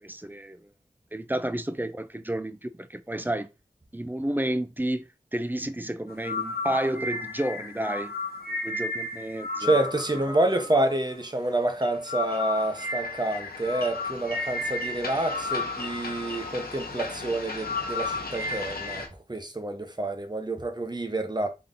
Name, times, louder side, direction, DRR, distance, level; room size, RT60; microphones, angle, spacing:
voice 1, 0.0-0.6 1.1-3.5 3.9-8.1 8.5-10.0 10.3-10.4, right 1 dB, 10° right, 0.4 m, -31 dB
sound 1, 6.1-19.1, left 3 dB, 85° left, 0.8 m, -33 dB
voice 2, 9.6-21.5, right 2 dB, 30° right, 0.8 m, -28 dB
3.7 x 2.7 x 3.7 m
wide cardioid pair, 45°, 15 cm